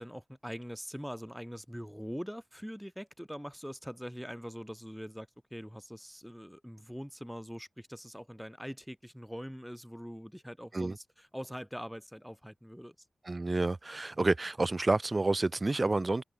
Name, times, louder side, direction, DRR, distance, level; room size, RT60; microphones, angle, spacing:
voice 1, 0.0-13.0, equal, ahead, 3.5 m, -43 dB
voice 2, 13.2-16.2, right 2 dB, 30° right, 0.4 m, -29 dB
wide cardioid pair, 105°, 0 cm